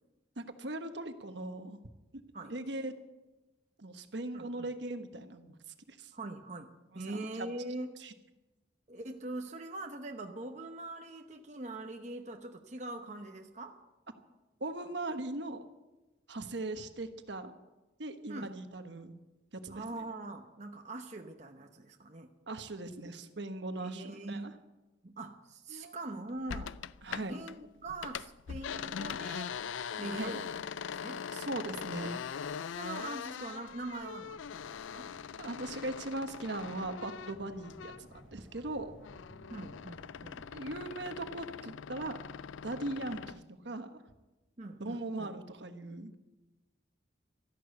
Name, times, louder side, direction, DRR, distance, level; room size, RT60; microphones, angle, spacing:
voice 1, 0.4-1.8 2.5-2.9 3.8-5.5 5.9-6.1 6.9-7.5 8.0-8.1 14.6-15.6 16.3-17.5 18.0-19.1 19.6-19.8 22.5-24.5 25.7-26.0 27.0-27.4 30.2-30.4 31.3-32.2 35.4-38.9 40.5-42.2 42.6-43.9 44.8-46.1, right 2 dB, 70° right, 8 dB, 1.2 m, -39 dB
voice 2, 4.3-4.7 6.1-7.9 8.9-13.8 18.3-18.6 19.7-22.3 23.8-24.6 25.0-26.8 27.2-29.5 30.0-30.6 31.0-31.2 32.8-35.1 39.5-40.5 44.6-45.3, right 2 dB, 40° right, 4 dB, 0.9 m, -43 dB
sound 1, 26.5-27.6 27.9-38.2 38.6-43.4, left 7 dB, 90° left, 0.4 m, -42 dB
sound 2, 33.0-42.7, equal, 5° right, 5.3 m, -59 dB
13.5 x 11.5 x 8.2 m, 1.1 s
head